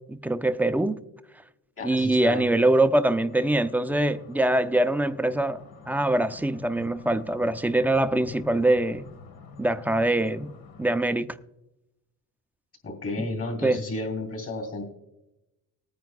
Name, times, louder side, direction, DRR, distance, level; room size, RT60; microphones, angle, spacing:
voice 1, 0.1-1.0 1.8-9.1 9.6-10.5 10.8-11.4 13.6-13.8, right 1 dB, 5° right, 0.3 m, -23 dB
voice 2, 1.8-2.5 12.8-14.8, left 2 dB, 40° left, 3.1 m, -32 dB
sound 1, 3.1-11.0, left 6 dB, 70° left, 1.4 m, -48 dB
20.0 x 9.2 x 2.3 m
cardioid pair, 130°, 37 cm